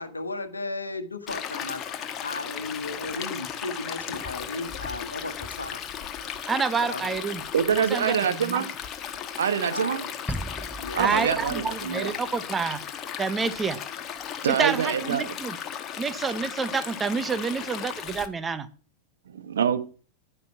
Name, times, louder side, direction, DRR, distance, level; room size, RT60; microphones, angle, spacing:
voice 1, 0.0-1.9 2.2-5.8 6.8-7.2 9.7-10.1 10.8-11.0 14.8-15.1, left 2 dB, 80° left, 6 dB, 1.3 m, -35 dB
Stream, 1.3-18.3, left 8 dB, 30° left, 1.4 m, -36 dB
voice 2, 6.5-7.4 7.7-8.7 11.0-12.8 13.2-13.8 14.6-15.6 16.0-18.7, right 5 dB, 15° right, 12 dB, 1.1 m, -28 dB
voice 3, 7.5-8.7 9.4-10.0 10.9-12.2 14.4-15.3 19.3-19.8, right 8 dB, 65° right, 11 dB, 1.2 m, -25 dB
sound 1, 10.3-12.8, equal, 5° left, 0.6 m, -37 dB
10.0 x 9.4 x 5.9 m, 0.39 s
figure-of-eight pair, 90°, 0 cm